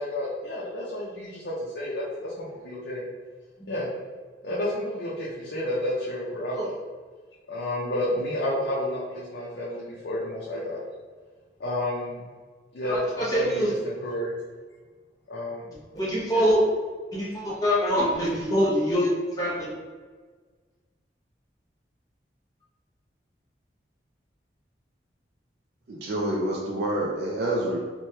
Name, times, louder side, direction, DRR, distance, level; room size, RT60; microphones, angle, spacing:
voice 1, 0.0-3.0 3.7-3.9 4.4-6.7 7.5-10.8 11.6-12.2 12.7-14.4 15.3-15.7 16.3-16.5, left 1 dB, 65° left, -6 dB, 0.5 m, -30 dB
voice 2, 12.9-13.7 15.9-16.7 17.1-19.7, equal, 20° left, -8 dB, 0.8 m, -24 dB
voice 3, 25.9-27.8, right 1 dB, 60° right, -3 dB, 0.4 m, -27 dB
3.1 x 2.1 x 2.8 m, 1.5 s
head